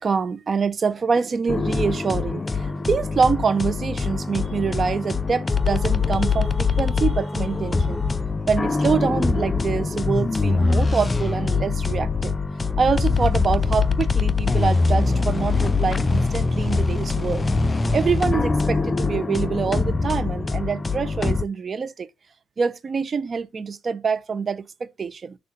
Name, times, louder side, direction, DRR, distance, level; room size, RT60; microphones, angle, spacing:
voice 1, 0.0-8.0 8.5-12.4 12.8-17.5 17.9-22.1 22.6-25.4, right 5 dB, 40° right, 0.9 m, -25 dB
sound 1, 1.5-21.4, left 4 dB, 25° left, 0.6 m, -23 dB
6.5 x 2.7 x 5.4 m
cardioid pair, 90°, 0 cm